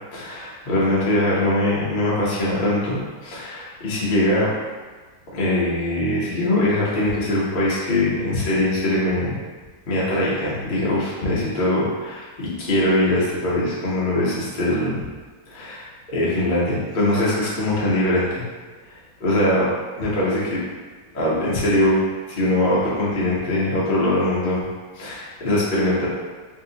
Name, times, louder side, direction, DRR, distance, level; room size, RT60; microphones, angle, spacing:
voice 1, 0.1-4.5 5.3-9.4 9.9-15.0 15.5-18.4 19.2-19.7 20.0-20.6 21.1-24.6 24.9-26.1, left 1 dB, 55° left, -8 dB, 0.5 m, -22 dB
3.3 x 2.7 x 2.7 m, 1.4 s
omnidirectional pair, 2.2 m